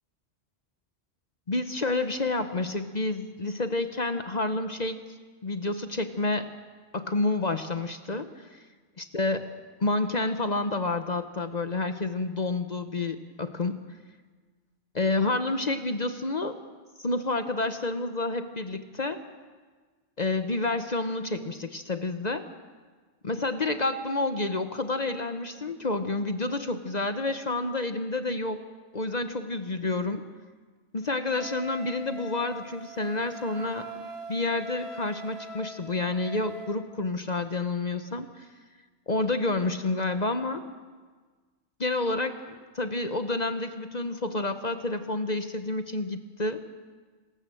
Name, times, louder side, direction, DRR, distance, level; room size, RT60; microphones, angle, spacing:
voice 1, 1.5-5.0 5.4-6.5 6.9-8.6 9.0-9.5 9.8-13.8 14.9-16.6 17.0-19.2 20.2-22.5 23.2-28.6 28.9-30.3 30.9-33.9 34.3-38.5 39.1-40.7 41.8-42.4 42.7-46.6, left 2 dB, 40° left, 9 dB, 1.0 m, -29 dB
Wind instrument woodwind instrument, 31.3-36.8, right 1 dB, 55° right, 2.3 m, -42 dB
28.0 x 13.5 x 7.7 m, 1.4 s
omnidirectional pair, 1.2 m